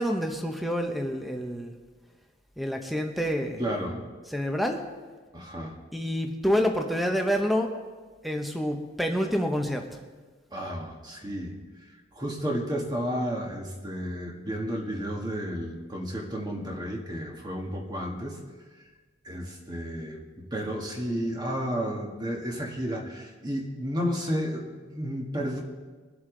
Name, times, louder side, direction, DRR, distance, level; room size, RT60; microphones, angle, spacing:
voice 1, 0.0-1.7 2.6-4.0 4.3-4.8 5.9-7.7 8.2-9.9, equal, ahead, 4 dB, 0.9 m, -28 dB
voice 2, 3.6-4.0 5.3-5.7 10.5-11.5 12.2-18.4 19.3-20.2 20.5-25.6, equal, 20° right, 0 dB, 1.6 m, -32 dB
23.0 x 7.9 x 3.9 m, 1.4 s
head